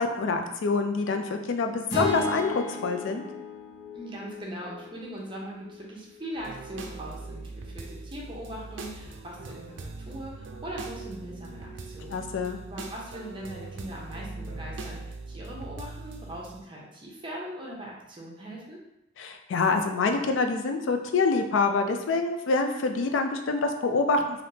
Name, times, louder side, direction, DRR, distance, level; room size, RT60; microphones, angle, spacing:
voice 1, 0.0-3.2 12.1-12.6 19.2-24.4, left 3 dB, 85° left, 5 dB, 0.4 m, -26 dB
sound 1, 1.9-6.2, left 2 dB, 60° left, 1.0 m, -35 dB
voice 2, 3.9-18.8, equal, 25° right, -3 dB, 0.6 m, -40 dB
sound 2, 6.4-16.6, right 3 dB, 75° right, 0.4 m, -41 dB
3.4 x 2.5 x 2.7 m, 0.90 s
head